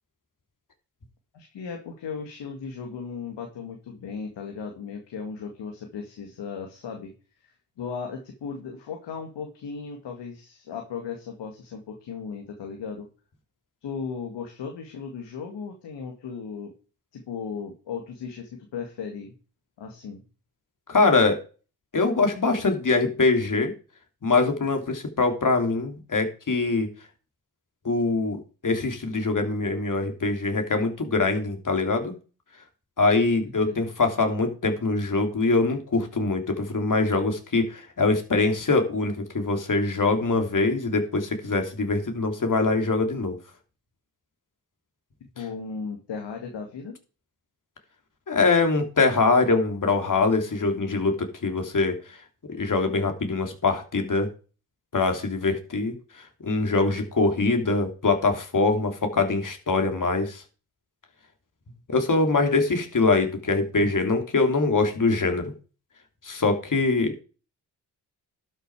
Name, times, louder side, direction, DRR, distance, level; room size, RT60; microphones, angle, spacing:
voice 1, 1.3-7.1 7.4-7.5 7.8-13.1 13.8-16.7 17.1-19.3 19.8-20.2 33.6-33.8 45.4-47.0, left 5 dB, 75° left, 3 dB, 2.1 m, -36 dB
voice 2, 20.9-21.4 21.9-23.7 24.2-26.9 27.8-32.1 33.0-43.4 48.3-51.2 51.4-52.2 52.5-54.3 54.9-60.4 61.9-65.5 66.2-67.2, left 3 dB, 45° left, 5 dB, 3.2 m, -23 dB
12.0 x 6.7 x 4.8 m, 0.35 s
supercardioid pair, 45°, 43 cm